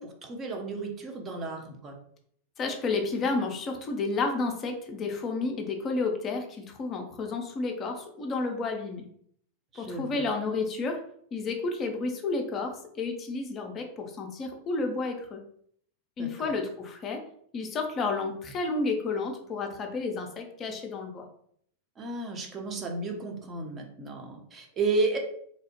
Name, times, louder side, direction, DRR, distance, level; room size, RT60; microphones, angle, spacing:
voice 1, 0.0-1.9 9.7-10.3 16.2-16.6 22.0-25.2, right 3 dB, 25° right, 2 dB, 0.6 m, -33 dB
voice 2, 2.6-9.1 9.8-11.0 11.3-15.4 16.2-17.2 17.5-21.3, left 3 dB, 30° left, 3 dB, 0.5 m, -31 dB
2.8 x 2.0 x 2.9 m, 0.65 s
figure-of-eight pair, 90°, 0 cm